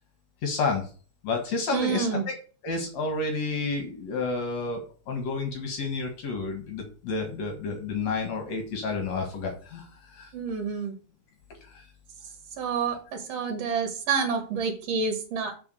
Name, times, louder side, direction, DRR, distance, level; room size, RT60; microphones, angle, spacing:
voice 1, 0.4-0.9 1.2-2.1 2.6-9.9 10.1-10.3 11.7-11.8, left 4 dB, 65° left, 3 dB, 2.7 m, -30 dB
voice 2, 1.7-2.2 10.3-10.9 12.6-15.5, right 5 dB, 60° right, 4 dB, 2.5 m, -28 dB
7.0 x 4.8 x 6.8 m, 0.38 s
omnidirectional pair, 3.5 m